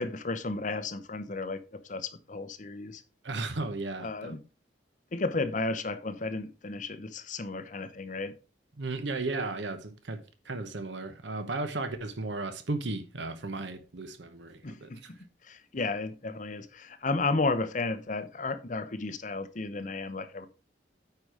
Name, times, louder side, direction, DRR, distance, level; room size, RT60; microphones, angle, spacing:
voice 1, 0.0-3.0 4.0-4.4 5.1-8.3 14.6-15.0 15.5-20.5, left 3 dB, 45° left, 0.8 m, -33 dB
voice 2, 3.2-4.3 8.8-15.1, right 3 dB, 80° right, 1.0 m, -35 dB
9.5 x 4.8 x 4.9 m
head